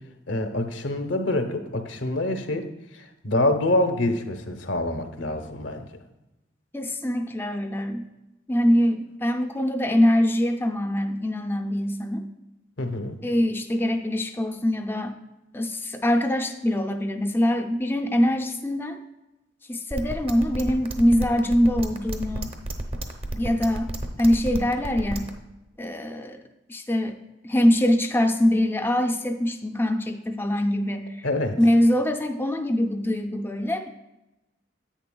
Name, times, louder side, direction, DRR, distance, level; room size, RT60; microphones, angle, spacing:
voice 1, 0.3-2.7 2.9-5.9 12.8-13.2 31.2-31.6, left 1 dB, 75° left, 7 dB, 0.8 m, -26 dB
voice 2, 6.7-8.1 8.5-12.3 13.2-15.2 15.5-19.0 19.7-22.5 23.3-25.3 25.8-26.4 26.7-27.2 27.4-31.3 31.6-33.9, left 1 dB, 10° left, 5 dB, 0.4 m, -23 dB
sound 1, 19.9-25.3, right 1 dB, 30° right, 0.7 m, -31 dB
10.0 x 8.3 x 2.3 m, 0.96 s
head